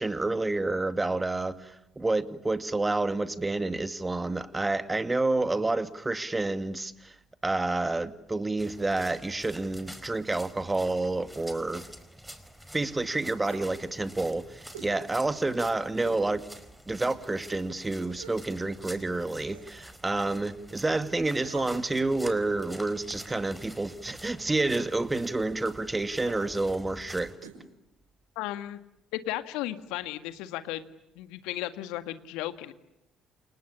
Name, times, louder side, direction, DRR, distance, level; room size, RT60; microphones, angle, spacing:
voice 1, 0.0-7.2 7.4-11.8 12.7-16.4 16.9-27.3, right 2 dB, 20° right, 11 dB, 2.2 m, -29 dB
sound 1, 8.6-27.4, equal, 5° right, 4.8 m, -48 dB
sound 2, 13.4-13.8 14.7-15.0 16.0-16.3 16.8-16.9 18.1-18.5 19.4-19.7 21.4-21.9 23.1-23.5 24.8-25.0 26.2-26.4 27.4-27.6 27.9-28.0, right 7 dB, 80° right, 5.0 m, -46 dB
voice 2, 28.4-28.8 29.1-30.8 31.2-32.7, left 15 dB, 70° left, 11 dB, 1.8 m, -35 dB
29.0 x 29.0 x 7.0 m, 0.88 s
figure-of-eight pair, 50°, 0 cm